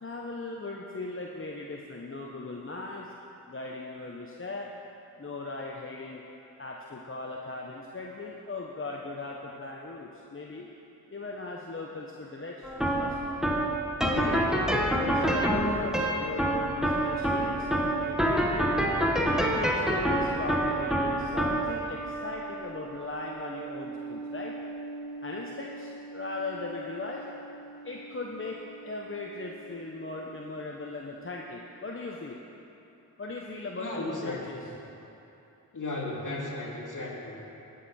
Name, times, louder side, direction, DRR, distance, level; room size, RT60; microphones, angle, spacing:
voice 1, 0.0-3.1 3.5-4.7 5.2-6.2 6.6-10.7 11.1-13.2 14.0-14.5 15.0-18.7 19.2-24.5 25.2-27.2 27.8-28.6 28.8-32.4 33.2-34.7, left 3 dB, 30° left, -1 dB, 0.9 m, -38 dB
sound 1, 12.6-29.8, right 1 dB, ahead, 1.4 m, -29 dB
voice 2, 33.8-34.4 35.7-37.4, left 2 dB, 50° left, -4 dB, 2.8 m, -35 dB
17.0 x 6.5 x 4.3 m, 2.9 s
cardioid pair, 45°, 39 cm